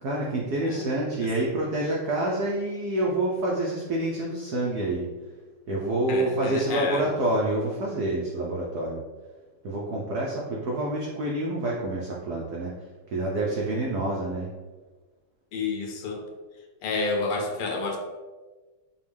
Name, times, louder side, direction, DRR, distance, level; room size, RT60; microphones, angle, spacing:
voice 1, 0.0-5.1 5.7-9.0 9.6-12.7 13.1-14.5, right 1 dB, 80° right, -3 dB, 0.8 m, -27 dB
voice 2, 0.5-0.9 1.2-1.3 6.1-7.1 15.5-16.2 16.8-18.0, left 3 dB, 80° left, 2 dB, 1.6 m, -30 dB
5.2 x 2.3 x 3.3 m, 1.3 s
omnidirectional pair, 2.4 m